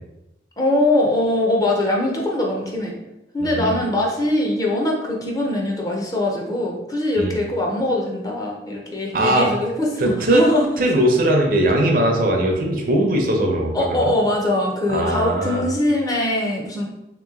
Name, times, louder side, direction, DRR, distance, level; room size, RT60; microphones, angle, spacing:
voice 1, 0.6-3.0 3.3-10.7 13.7-16.9, left 1 dB, 20° left, -1 dB, 0.6 m, -22 dB
voice 2, 3.4-3.8 7.2-7.3 9.1-9.5 10.0-10.4 10.8-14.1 14.9-15.6, right 1 dB, 50° right, 1 dB, 0.7 m, -19 dB
3.5 x 2.9 x 3.6 m, 0.93 s
head